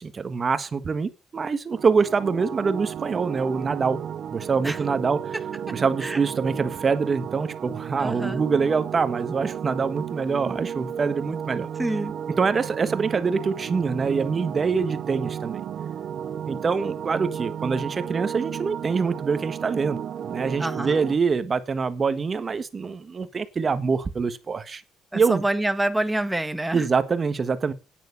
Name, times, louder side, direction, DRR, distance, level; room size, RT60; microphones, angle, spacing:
voice 1, 0.0-4.0 4.3-5.3 5.7-11.7 12.4-15.6 16.5-24.8 25.1-25.4 26.7-27.7, right 5 dB, 40° right, 1.4 m, -25 dB
sound 1, 1.7-21.1, right 8 dB, 70° right, 0.8 m, -33 dB
voice 2, 8.0-8.4 11.8-12.1 20.6-21.0 25.1-26.9, right 1 dB, 10° right, 1.3 m, -27 dB
9.4 x 9.1 x 5.5 m
cardioid pair, 90°, 0 cm